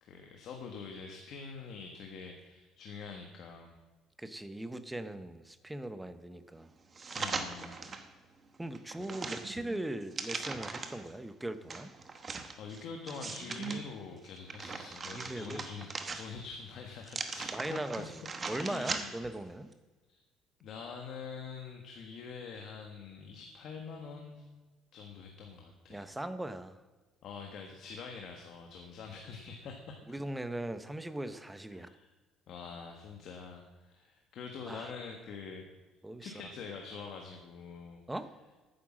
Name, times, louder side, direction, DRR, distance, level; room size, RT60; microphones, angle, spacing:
voice 1, 0.0-3.8 7.2-7.8 9.0-9.2 12.6-18.1 18.5-19.1 20.1-20.2 20.6-24.4 24.9-26.1 27.2-30.0 31.7-32.1 32.5-35.7 36.2-38.0, left 5 dB, 50° left, 2 dB, 1.4 m, -45 dB
voice 2, 4.2-6.7 8.6-11.9 15.1-15.6 17.5-18.1 18.5-19.7 25.9-26.8 30.1-31.9 34.7-34.9 36.0-36.3 38.1-38.3, right 1 dB, 5° right, 11 dB, 0.7 m, -39 dB
sound 1, 6.9-8.1 8.5-11.1 11.7-13.8 14.2-16.6 17.0-19.3 19.7-19.8, right 4 dB, 25° right, 1.0 m, -40 dB
11.5 x 9.6 x 7.4 m, 1.2 s
cardioid pair, 170°, 0 cm